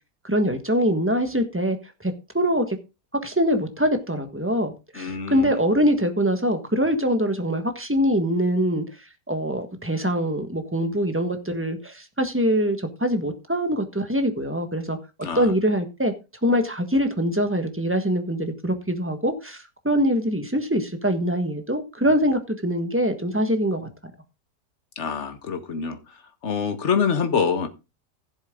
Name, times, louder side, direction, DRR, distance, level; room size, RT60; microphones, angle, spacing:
voice 1, 0.2-1.8 2.0-2.8 3.2-8.8 9.3-15.0 15.3-16.1 16.4-23.9, equal, 10° right, 1.3 m, -23 dB
voice 2, 4.9-5.5 15.2-15.5 25.0-26.0 26.4-27.7, left 6 dB, 45° left, 1.6 m, -25 dB
16.0 x 7.4 x 3.8 m
omnidirectional pair, 1.8 m